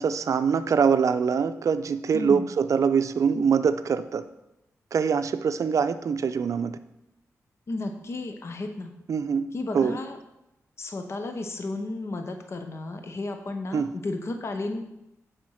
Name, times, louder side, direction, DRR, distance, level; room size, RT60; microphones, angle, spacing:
voice 1, 0.0-4.2 4.9-6.8 9.1-9.5 9.7-10.0 13.7-13.9, right 6 dB, 65° right, 11 dB, 0.5 m, -24 dB
voice 2, 2.1-2.5 7.7-8.9 9.5-10.2 10.8-14.8, left 2 dB, 50° left, 6 dB, 0.8 m, -33 dB
7.3 x 5.1 x 6.3 m, 0.89 s
wide cardioid pair, 100°, 6 cm